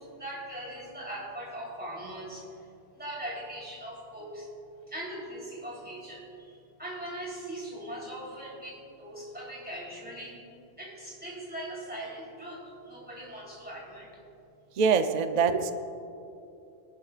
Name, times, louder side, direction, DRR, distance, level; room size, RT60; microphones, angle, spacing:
voice 1, 0.0-2.5 2.9-4.5 4.9-10.4 10.8-14.1, right 1 dB, 10° right, -5 dB, 3.5 m, -40 dB
voice 2, 14.8-15.7, right 5 dB, 50° right, 9 dB, 0.6 m, -24 dB
22.5 x 12.0 x 2.4 m, 2.7 s
omnidirectional pair, 1.0 m